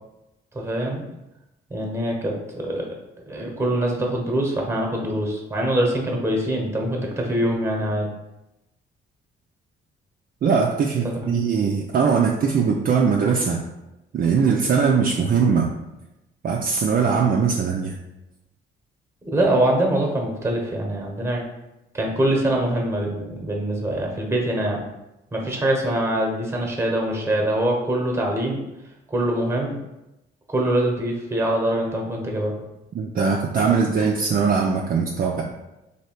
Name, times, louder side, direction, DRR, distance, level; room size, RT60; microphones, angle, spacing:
voice 1, 0.5-1.0 1.7-2.9 3.3-8.1 11.0-11.3 19.3-21.4 21.9-24.8 25.3-28.6 29.1-29.7 30.5-32.5, right 1 dB, 15° right, 0 dB, 1.1 m, -24 dB
voice 2, 10.4-13.6 14.1-15.7 16.4-18.0 32.9-35.4, right 5 dB, 45° right, 0 dB, 0.5 m, -21 dB
3.2 x 2.8 x 4.5 m, 0.94 s
cardioid pair, 90°, 20 cm